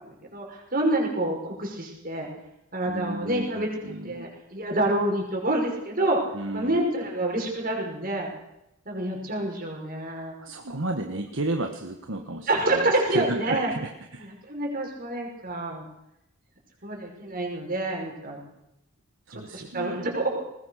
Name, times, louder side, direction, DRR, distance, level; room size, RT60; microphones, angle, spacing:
voice 1, 0.0-2.3 2.7-3.7 4.0-6.2 6.5-8.3 8.9-10.3 12.5-13.7 14.2-15.9 16.8-18.4 19.3-20.4, right 1 dB, 40° right, 1 dB, 5.8 m, -27 dB
voice 2, 2.9-4.2 6.3-6.8 10.4-14.3 19.3-20.1, right 2 dB, 60° right, 5 dB, 1.5 m, -33 dB
20.5 x 20.0 x 6.6 m, 0.85 s
head